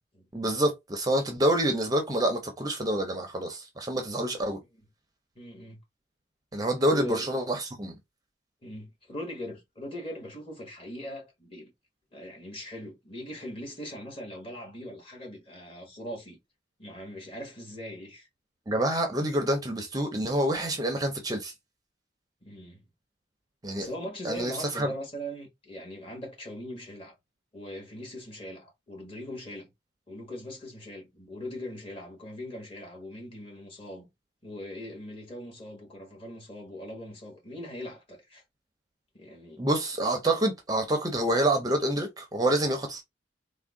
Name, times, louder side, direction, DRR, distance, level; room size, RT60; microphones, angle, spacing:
voice 1, 0.3-4.6 6.5-8.0 18.7-21.5 23.6-23.9 24.2-24.9 39.6-43.0, right 1 dB, 20° right, 0.5 m, -27 dB
voice 2, 5.3-5.8 6.8-7.3 8.6-11.7 12.1-16.4 16.8-18.3 22.4-22.8 23.7-27.1 27.5-29.7 30.1-34.1 34.4-38.4 39.1-39.6, equal, 30° left, 1.4 m, -40 dB
3.5 x 2.1 x 3.6 m
head